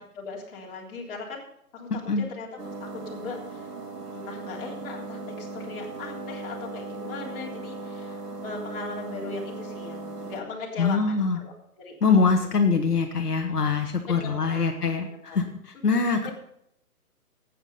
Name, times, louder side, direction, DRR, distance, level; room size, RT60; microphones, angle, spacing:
voice 1, 0.0-1.5 1.7-2.5 2.8-3.7 4.1-12.5 14.1-15.4 16.2-16.3, left 3 dB, 35° left, -3 dB, 3.6 m, -39 dB
sound 1, 2.6-10.4, right 2 dB, 85° right, 2.5 m, -38 dB
voice 2, 10.8-11.4 12.0-16.3, left 4 dB, 80° left, 3 dB, 1.6 m, -23 dB
12.0 x 8.9 x 5.6 m, 0.73 s
figure-of-eight pair, 145°, 46 cm